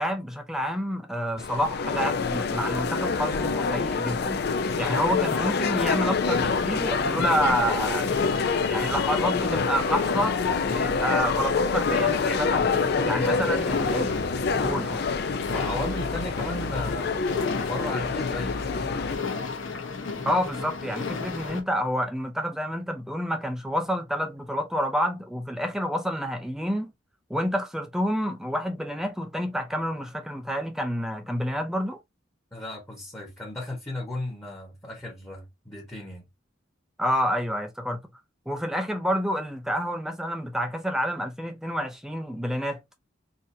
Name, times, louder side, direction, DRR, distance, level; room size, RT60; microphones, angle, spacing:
voice 1, 0.0-4.4 4.8-8.1 8.7-10.4 10.7-12.8 13.0-14.1 14.6-15.0 20.3-26.9 27.3-32.0 37.0-38.0 38.5-42.8, equal, 5° right, 0.4 m, -28 dB
sound 1, 1.4-19.2, left 4 dB, 55° left, 0.4 m, -26 dB
sound 2, 4.4-21.6, left 4 dB, 85° left, 0.8 m, -35 dB
voice 2, 12.9-13.4 15.5-17.3 17.6-19.0 32.5-36.2, left 1 dB, 15° left, 1.2 m, -35 dB
4.0 x 2.6 x 2.7 m
head